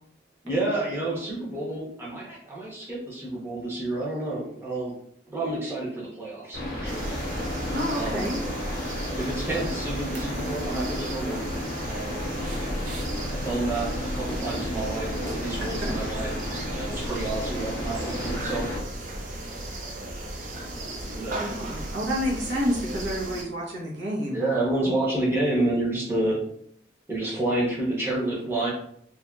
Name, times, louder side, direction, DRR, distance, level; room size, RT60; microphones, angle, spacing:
voice 1, 0.4-4.9 5.3-7.1 7.9-8.2 9.2-11.5 11.9-12.2 13.3-16.3 16.7-18.7 21.1-21.5 24.3-26.4 27.1-28.7, right 2 dB, 15° right, -6 dB, 0.7 m, -29 dB
sound 1, 6.5-18.8, left 1 dB, 55° left, 0.7 m, -32 dB
sound 2, 6.8-23.4, right 1 dB, 45° right, 0.4 m, -36 dB
voice 2, 7.7-8.4 15.6-15.9 21.4-24.4, equal, 85° right, -3 dB, 0.8 m, -29 dB
2.7 x 2.5 x 2.2 m, 0.69 s
head